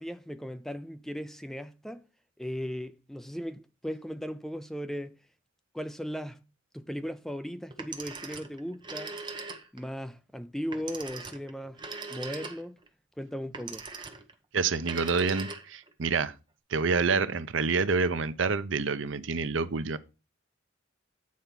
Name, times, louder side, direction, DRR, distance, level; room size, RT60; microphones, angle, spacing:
voice 1, 0.0-2.0 2.4-5.2 5.7-6.5 6.7-9.2 9.7-11.8 12.1-12.8 13.2-13.8, equal, ahead, 0.4 m, -37 dB
Telephone, 7.7-9.9 10.7-12.9 13.5-14.3 14.8-15.9, right 4 dB, 25° right, 1.0 m, -40 dB
voice 2, 14.5-16.3 16.7-20.0, right 4 dB, 70° right, 0.7 m, -27 dB
8.6 x 4.5 x 5.8 m
head